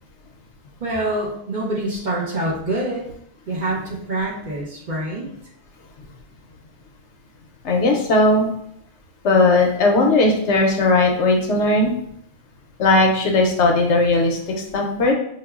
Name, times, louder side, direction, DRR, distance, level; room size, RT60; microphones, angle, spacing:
voice 1, 0.8-3.0 3.5-5.3, right 1 dB, 45° right, -5 dB, 0.7 m, -25 dB
voice 2, 7.6-8.5 9.2-11.9 12.8-15.1, left 2 dB, 70° left, 1 dB, 0.8 m, -17 dB
4.8 x 2.2 x 2.3 m, 0.70 s
omnidirectional pair, 1.3 m